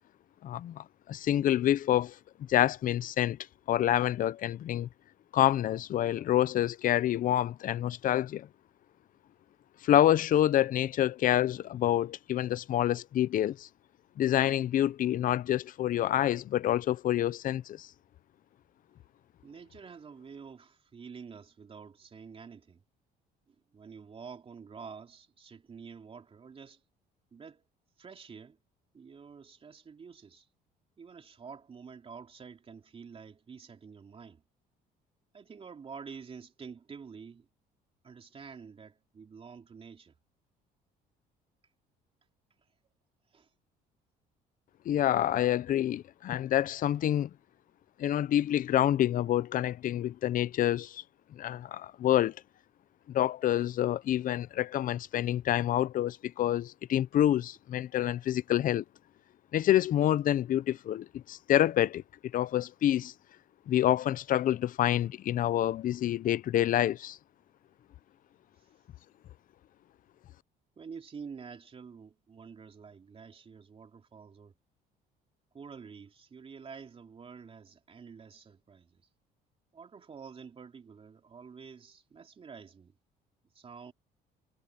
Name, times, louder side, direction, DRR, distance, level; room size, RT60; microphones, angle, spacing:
voice 1, 0.4-2.2 2.5-3.4 3.7-4.9 5.3-8.5 9.8-13.7 14.2-17.9 44.9-47.3 48.0-51.0 51.3-52.3 53.1-58.8 59.5-62.0 62.3-63.1 63.7-67.2, left 12 dB, 55° left, 0.7 m, -27 dB
voice 2, 19.4-22.8 23.5-26.8 27.3-27.7 28.0-28.6 28.9-30.5 31.0-34.4 35.3-37.5 38.0-40.1 42.6-42.7 43.3-43.5 68.5-68.7 70.8-74.5 75.5-79.1 79.7-82.9 83.5-83.9, right 6 dB, 35° right, 3.2 m, -48 dB
cardioid pair, 110°, 17 cm